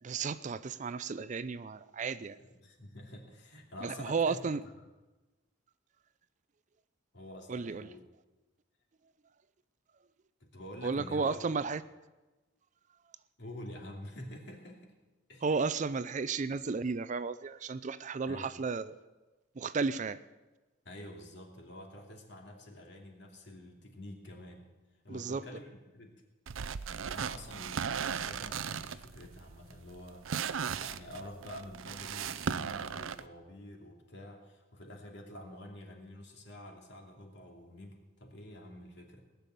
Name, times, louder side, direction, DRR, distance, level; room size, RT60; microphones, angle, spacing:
voice 1, 0.0-2.4 3.8-4.6 7.5-7.9 10.8-11.8 15.4-18.9 19.6-20.2 25.1-25.4, right 4 dB, 40° right, 15 dB, 0.4 m, -33 dB
voice 2, 2.4-4.7 7.1-8.0 10.4-11.4 13.4-14.9 15.3-15.4 18.3-18.5 20.8-24.7 25.0-26.1 27.0-39.2, left 1 dB, 60° left, 1 dB, 2.7 m, -48 dB
sound 1, 26.5-33.2, right 7 dB, 90° right, 0.6 m, -37 dB
18.5 x 7.0 x 9.2 m, 1.2 s
head